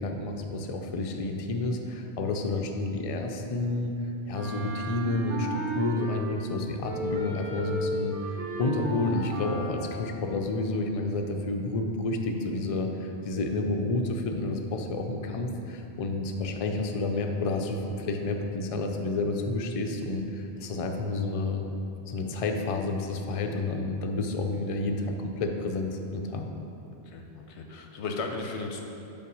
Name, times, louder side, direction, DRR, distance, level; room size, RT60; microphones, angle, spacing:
voice 1, 0.0-3.9 4.3-21.6 22.1-26.5, left 2 dB, 45° left, 3 dB, 0.5 m, -30 dB
Wind instrument woodwind instrument, 4.3-6.5 6.8-9.9, right 1 dB, 85° right, 1.1 m, -34 dB
voice 2, 15.3-15.6 26.8-28.8, left 3 dB, 90° left, 3 dB, 1.0 m, -36 dB
5.8 x 4.3 x 6.1 m, 2.9 s
omnidirectional pair, 1.1 m